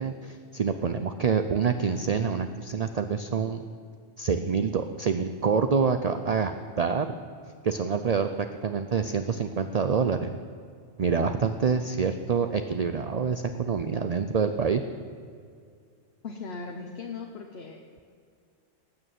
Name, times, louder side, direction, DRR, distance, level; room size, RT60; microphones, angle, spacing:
voice 1, 0.0-3.6 4.2-7.2 7.6-10.3 11.0-14.8, right 6 dB, 50° right, 8 dB, 0.5 m, -26 dB
voice 2, 16.2-17.8, left 4 dB, 55° left, 3 dB, 1.2 m, -38 dB
18.5 x 6.7 x 9.1 m, 2.3 s
omnidirectional pair, 1.3 m